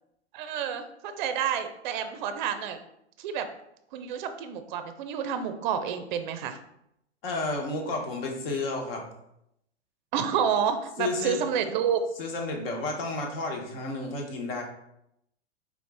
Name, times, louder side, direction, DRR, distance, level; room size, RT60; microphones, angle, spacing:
voice 1, 0.3-2.8 3.2-3.5 3.9-6.6 10.1-12.0, right 8 dB, 45° right, 9 dB, 0.5 m, -29 dB
voice 2, 7.2-9.0 11.0-11.4 12.2-14.6, left 2 dB, 55° left, 2 dB, 1.1 m, -31 dB
4.8 x 2.4 x 3.3 m, 0.78 s
figure-of-eight pair, 100°, 34 cm